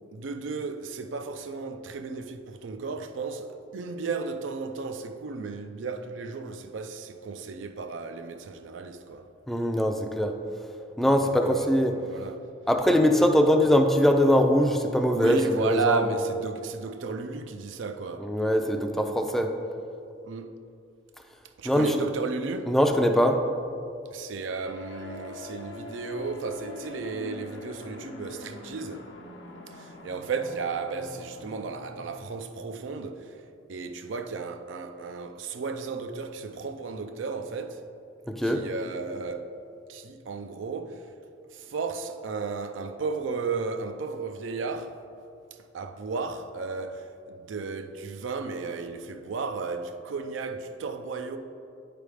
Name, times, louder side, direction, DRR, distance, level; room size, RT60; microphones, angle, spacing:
voice 1, 0.1-9.3 11.2-12.5 13.2-13.3 15.1-18.3 20.2-20.6 21.6-22.7 24.1-29.0 29.7-33.3 33.7-37.8 38.4-39.5 39.9-41.0 41.5-45.0 45.7-51.4, right 4 dB, 90° right, 0.4 m, -34 dB
voice 2, 9.5-10.3 11.0-11.9 12.7-16.1 18.2-19.5 21.6-21.9 22.7-23.4 38.3-38.6, equal, ahead, 0.3 m, -22 dB
sound 1, 24.6-32.2, left 2 dB, 85° left, 0.8 m, -44 dB
9.0 x 3.4 x 4.9 m
head